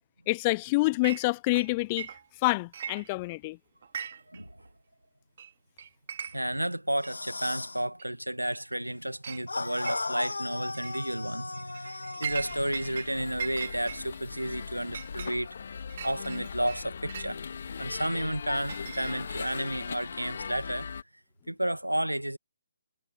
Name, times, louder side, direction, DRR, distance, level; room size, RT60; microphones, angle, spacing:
voice 1, 0.3-2.1 2.4-3.6, left 24 dB, 25° left, 0.3 m, -27 dB
Chink clink, 1.0-1.2 1.5-2.4 2.7-3.4 3.8-4.4 4.7-4.8 5.4-5.5 5.8-6.6 7.0-7.1 8.0-8.1 8.5-8.9 9.2-9.4 9.8-10.3 10.7-11.0 11.5-13.1 13.4-17.3 18.0-19.5, right 8 dB, 45° right, 2.0 m, -40 dB
voice 2, 4.0-4.7 6.3-15.5 16.0-17.4 17.8-20.9 21.5-22.4, right 1 dB, 85° right, 1.6 m, -32 dB
sound 1, 7.0-7.8 9.5-12.6, left 3 dB, 70° left, 0.9 m, -36 dB
sound 2, 12.3-21.0, left 6 dB, 50° left, 2.3 m, -39 dB
figure-of-eight pair, 140°, 0 cm